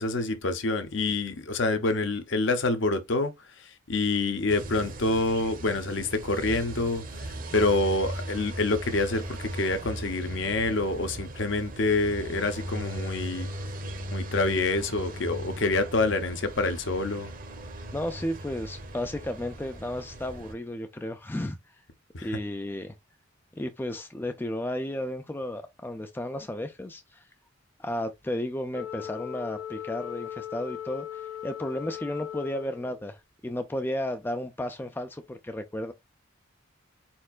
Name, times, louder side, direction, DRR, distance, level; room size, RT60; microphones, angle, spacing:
voice 1, 0.0-13.5 14.1-17.3 22.1-22.4, left 2 dB, 60° left, 0.8 m, -27 dB
sound 1, 4.5-20.5, right 1 dB, 40° right, 0.8 m, -38 dB
voice 2, 17.9-21.6 22.2-23.0 23.5-27.2 27.8-35.9, left 1 dB, 10° left, 0.3 m, -33 dB
Wind instrument woodwind instrument, 28.7-33.1, left 11 dB, 85° left, 1.7 m, -38 dB
4.6 x 4.3 x 2.4 m
head